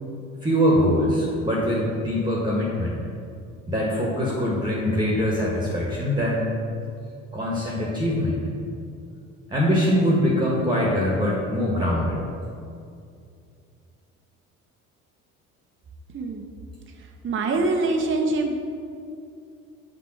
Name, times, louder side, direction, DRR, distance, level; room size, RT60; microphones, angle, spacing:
voice 1, 0.4-3.0 3.7-6.5 7.3-8.5 9.5-12.2, equal, 10° right, -4 dB, 1.6 m, -23 dB
voice 2, 16.9-18.5, right 3 dB, 30° right, 2 dB, 1.0 m, -25 dB
6.1 x 5.1 x 6.4 m, 2.4 s
figure-of-eight pair, 60°, 41 cm